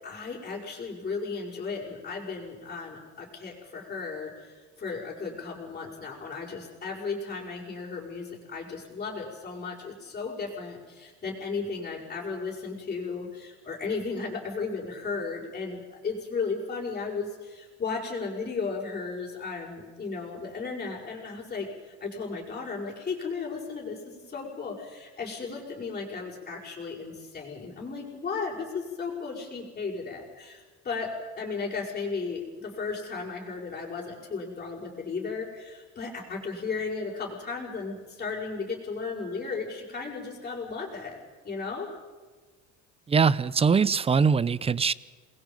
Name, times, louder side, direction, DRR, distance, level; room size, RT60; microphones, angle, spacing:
voice 1, 0.0-41.9, left 4 dB, 25° left, -6 dB, 6.1 m, -35 dB
voice 2, 43.1-44.9, right 5 dB, 20° right, 20 dB, 0.6 m, -22 dB
28.0 x 21.5 x 5.5 m, 1.4 s
cardioid pair, 120°, 32 cm